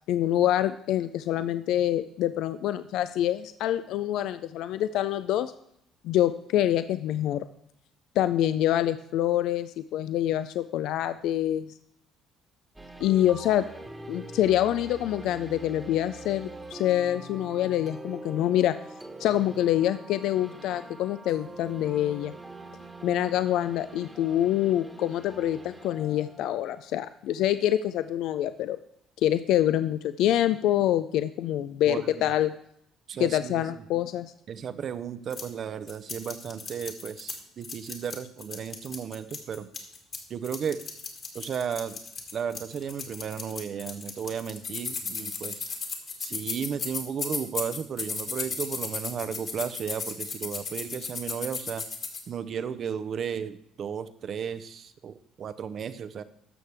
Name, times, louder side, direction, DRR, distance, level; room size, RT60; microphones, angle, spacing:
voice 1, 0.1-5.5 6.0-7.4 8.2-11.7 13.0-13.6 14.1-18.8 19.2-22.3 23.0-28.8 29.2-32.5 33.2-34.3, left 12 dB, 70° left, 12 dB, 0.3 m, -26 dB
sound 1, 12.7-27.6, right 2 dB, 10° right, 1.3 m, -44 dB
voice 2, 31.8-32.3 33.1-33.8 34.5-39.7 40.3-40.8 41.3-42.0 42.3-45.6 46.2-51.8 52.3-56.2, right 7 dB, 55° right, 13 dB, 0.6 m, -34 dB
sound 2, 35.3-35.4 35.9-37.4 37.6-40.2 40.4-52.2, left 5 dB, 50° left, 1.9 m, -35 dB
12.0 x 6.5 x 3.4 m, 0.72 s
hypercardioid pair, 65°, 0 cm